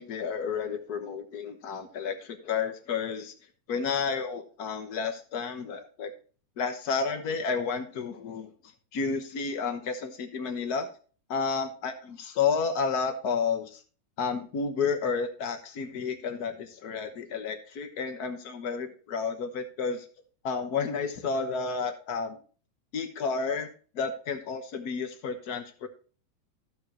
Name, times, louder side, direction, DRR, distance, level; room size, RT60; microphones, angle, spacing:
voice 1, 0.0-3.3 3.7-6.1 6.6-8.5 8.9-10.9 11.3-13.8 14.2-20.0 20.4-22.4 22.9-25.9, left 5 dB, 80° left, 5 dB, 0.8 m, -31 dB
14.5 x 6.3 x 2.9 m, 0.39 s
omnidirectional pair, 3.3 m